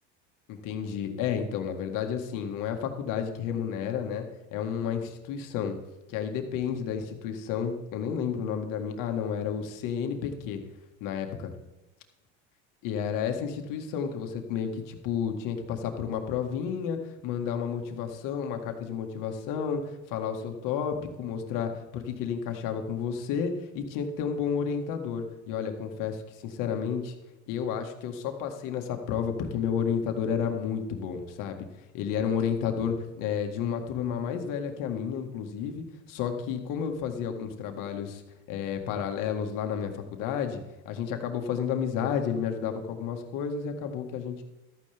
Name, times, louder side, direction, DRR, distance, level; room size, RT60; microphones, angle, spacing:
voice 1, 0.5-4.3 4.5-5.8 6.1-10.6 11.0-11.5 12.8-27.2 27.5-31.7 31.9-38.2 38.5-40.6 40.9-44.4, left 7 dB, 65° left, 5 dB, 1.8 m, -31 dB
13.5 x 9.3 x 3.5 m, 1.0 s
supercardioid pair, 110°, 35 cm